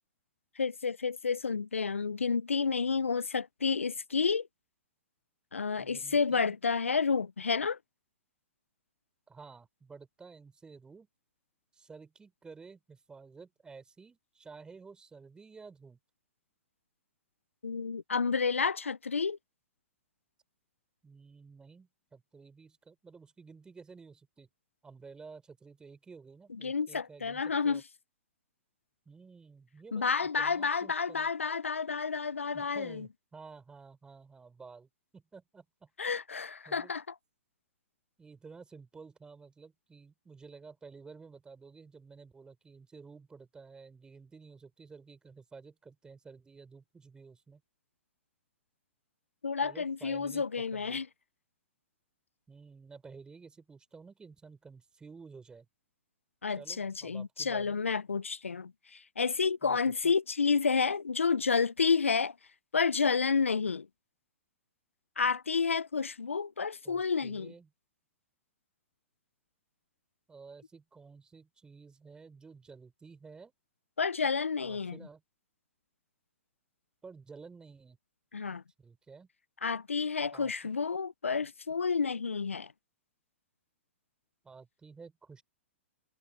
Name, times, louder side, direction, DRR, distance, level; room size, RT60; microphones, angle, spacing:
voice 1, 0.6-4.5 5.5-7.8 17.6-19.4 26.6-27.8 29.9-33.1 36.0-37.1 49.4-51.1 56.4-62.4 62.7-63.9 65.2-67.5 74.0-75.0 78.3-78.6 79.6-82.7, left 5 dB, 80° left, 0.9 m, -30 dB
voice 2, 5.8-6.6 9.3-11.1 11.7-16.0 21.0-24.5 24.8-27.8 29.0-31.3 32.5-35.9 36.7-36.9 38.2-47.6 49.6-50.4 50.7-51.0 52.5-55.7 56.5-57.8 59.6-59.8 60.0-60.1 66.8-67.7 70.3-73.5 74.6-75.2 77.0-78.0 78.8-79.3 80.3-80.5 84.4-85.4, right 4 dB, 10° right, 4.9 m, -52 dB
figure-of-eight pair, 110°, 7 cm